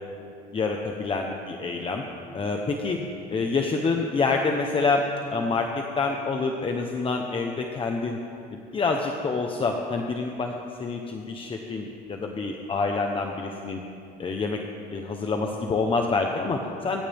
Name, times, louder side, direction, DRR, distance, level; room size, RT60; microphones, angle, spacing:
voice 1, 0.5-2.0 2.3-3.0 3.3-8.2 8.5-13.8 14.2-14.6 14.9-17.0, left 4 dB, 30° left, 2 dB, 1.2 m, -27 dB
23.5 x 15.0 x 3.7 m, 2.6 s
cardioid pair, 115°, 18 cm